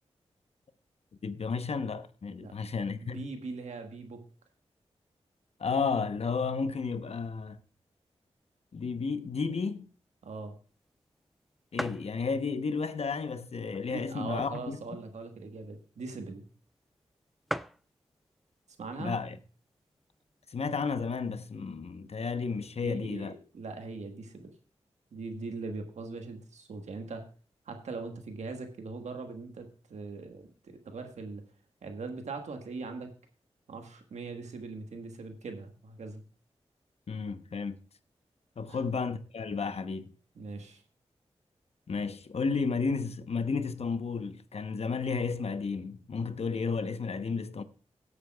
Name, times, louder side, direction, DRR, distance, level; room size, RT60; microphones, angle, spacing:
voice 1, 1.2-3.2 5.6-7.6 8.7-9.9 11.7-14.8 19.0-19.4 20.5-23.3 37.1-37.8 38.6-40.1 41.9-47.6, left 5 dB, 65° left, 0.9 m, -32 dB
voice 2, 3.0-4.2 10.2-10.6 13.8-16.4 18.8-19.1 22.8-24.5 25.1-27.3 27.7-31.4 31.8-33.1 33.7-36.2 38.7-38.9 40.3-40.8, right 3 dB, 85° right, 1.4 m, -41 dB
sound 1, 10.8-10.9 11.2-11.3 11.7-12.1 12.8-12.9 13.7-14.8 15.2-15.3 15.5-15.7 16.5-16.6 16.8-16.9 17.2-17.3 17.5-17.9 18.8-19.1 19.6-19.7 19.9-20.7, equal, ahead, 0.4 m, -38 dB
17.5 x 8.2 x 2.3 m
cardioid pair, 45°, 12 cm